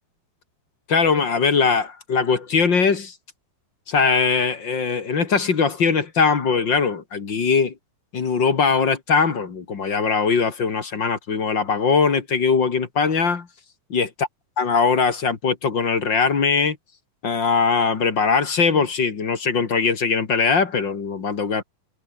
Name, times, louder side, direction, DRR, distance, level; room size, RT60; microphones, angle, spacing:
voice 1, 0.9-3.1 3.9-7.7 8.1-13.5 13.9-14.1 14.6-16.8 17.2-21.6, left 5 dB, 35° left, 2.1 m, -21 dB
omnidirectional pair, 4.8 m